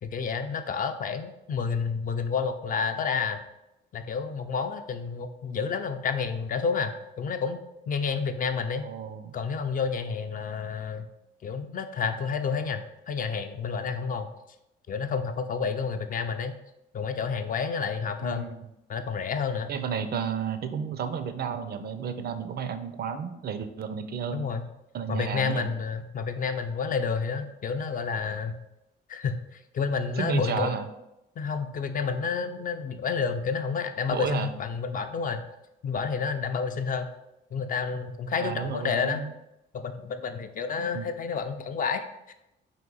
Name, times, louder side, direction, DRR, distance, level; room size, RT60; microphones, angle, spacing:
voice 1, 0.0-3.4 3.9-7.6 7.9-8.8 9.3-11.1 11.4-14.3 14.9-16.5 16.9-18.4 18.9-19.7 24.3-24.6 25.1-28.6 29.1-30.7 31.4-35.4 35.8-37.1 37.5-39.2 39.7-42.3, left 5 dB, 45° left, 8 dB, 0.4 m, -30 dB
voice 2, 8.8-9.4 18.2-18.6 19.7-24.5 24.9-25.7 30.2-30.9 34.1-34.5 38.4-39.3 40.9-41.1, right 7 dB, 50° right, 9 dB, 0.4 m, -32 dB
3.6 x 2.6 x 3.9 m, 0.88 s
cardioid pair, 90°, 20 cm